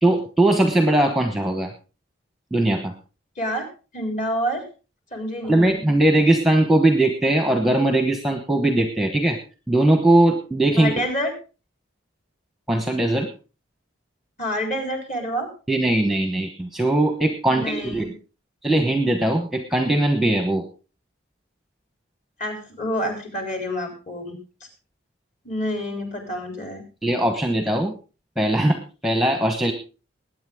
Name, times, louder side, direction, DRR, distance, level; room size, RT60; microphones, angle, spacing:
voice 1, 0.0-1.7 2.5-2.9 5.5-9.4 9.7-10.9 12.7-13.3 15.7-18.1 18.6-20.6 27.0-27.9 28.4-29.7, right 1 dB, ahead, 5 dB, 1.1 m, -20 dB
voice 2, 3.4-3.7 3.9-4.6 5.1-5.9 10.8-11.3 14.4-15.5 17.5-18.1 22.4-24.4 25.4-26.8, equal, 35° left, 3 dB, 3.8 m, -28 dB
20.5 x 9.0 x 3.6 m, 0.34 s
head